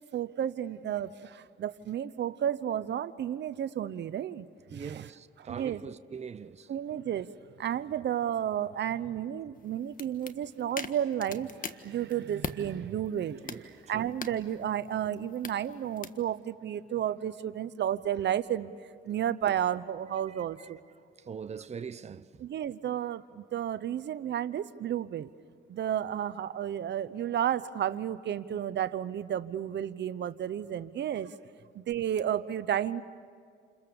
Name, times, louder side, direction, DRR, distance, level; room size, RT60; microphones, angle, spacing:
voice 1, 0.1-4.5 4.7-5.1 5.4-5.8 6.7-7.3 7.6-18.7 19.0-20.8 22.4-25.3 25.7-31.4 31.7-33.0, right 10 dB, 60° right, 0.9 m, -32 dB
voice 2, 4.7-6.7 13.4-14.1 20.6-20.7 21.2-22.4, right 6 dB, 35° right, 0.8 m, -42 dB
sound 1, 9.5-12.6 13.1-16.2, left 5 dB, 45° left, 1.6 m, -43 dB
29.5 x 28.5 x 7.0 m
cardioid pair, 90°, 20 cm